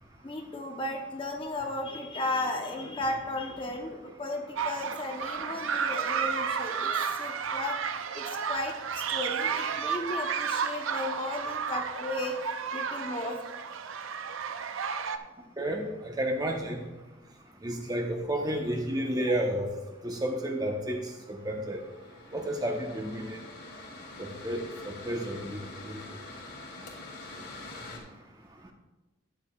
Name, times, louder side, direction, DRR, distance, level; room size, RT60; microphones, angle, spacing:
voice 1, 0.2-7.8 8.1-12.4 12.7-13.6, left 2 dB, 25° left, 2 dB, 0.9 m, -35 dB
sound 1, 4.6-15.2, right 6 dB, 90° right, 0.5 m, -32 dB
voice 2, 16.2-16.8 17.6-19.7 20.0-21.0 21.4-21.8 22.3-23.4 24.2-24.6 25.0-25.6 25.9-26.0, right 1 dB, 20° right, 2 dB, 0.9 m, -31 dB
Mechanical fan, 21.0-28.0, left 2 dB, 60° left, 1.9 m, -45 dB
13.0 x 9.0 x 2.4 m, 1.1 s
head